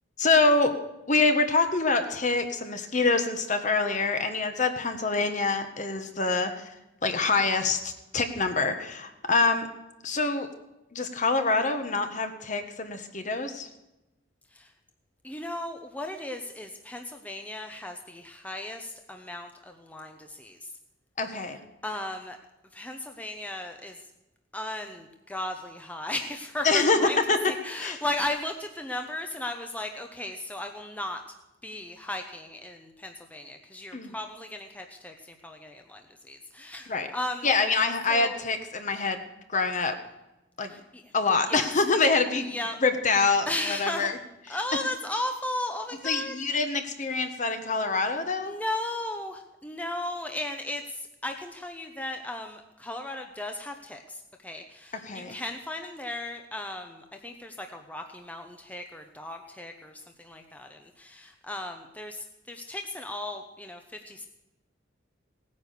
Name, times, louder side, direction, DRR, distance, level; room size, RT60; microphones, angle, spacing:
voice 1, 0.2-0.7 1.1-6.7 7.0-9.7 10.0-10.5 10.9-13.7 21.2-21.6 26.6-27.0 27.3-27.4 27.8-28.0 33.9-34.1 36.9-37.1 37.4-39.2 39.5-39.9 40.6-40.7 41.1-42.5 42.8-43.5 43.8-44.1 46.0-48.5 55.0-55.4, left 3 dB, 40° left, 8 dB, 1.4 m, -25 dB
voice 2, 15.2-20.7 21.4-21.5 21.8-22.4 22.7-24.1 24.5-27.2 27.5-31.2 31.6-37.5 38.1-38.4 40.7-41.1 41.5-41.7 42.4-42.8 43.5-44.1 44.5-46.3 48.4-64.3, left 1 dB, 10° left, 4 dB, 0.9 m, -36 dB
17.5 x 9.6 x 6.7 m, 0.96 s
head